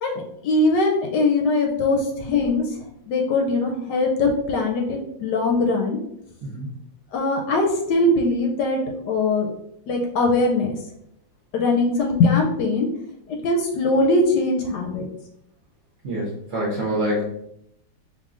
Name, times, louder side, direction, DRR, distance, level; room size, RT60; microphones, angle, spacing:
voice 1, 0.0-2.6 3.1-6.0 7.1-9.5 9.9-10.8 11.5-12.9 13.3-15.1, left 2 dB, 70° left, 1 dB, 1.1 m, -21 dB
voice 2, 16.0-17.2, equal, 60° right, -6 dB, 0.8 m, -26 dB
4.7 x 2.8 x 2.4 m, 0.77 s
omnidirectional pair, 2.1 m